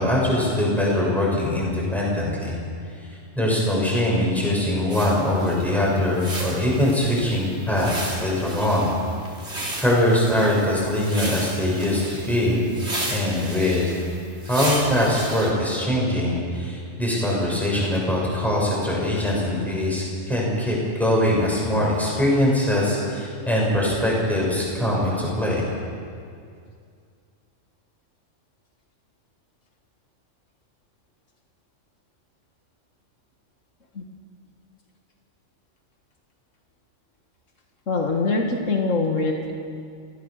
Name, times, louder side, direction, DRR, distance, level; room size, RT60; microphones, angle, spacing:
voice 1, 0.0-2.6 3.3-8.9 9.8-12.7 13.1-13.9 14.5-25.6, left 1 dB, ahead, -4 dB, 6.6 m, -22 dB
sound 1, 4.9-15.5, right 1 dB, 60° right, 3.6 m, -34 dB
voice 2, 37.9-39.5, left 3 dB, 85° left, 2 dB, 2.2 m, -23 dB
29.0 x 15.5 x 6.6 m, 2.3 s
omnidirectional pair, 1.3 m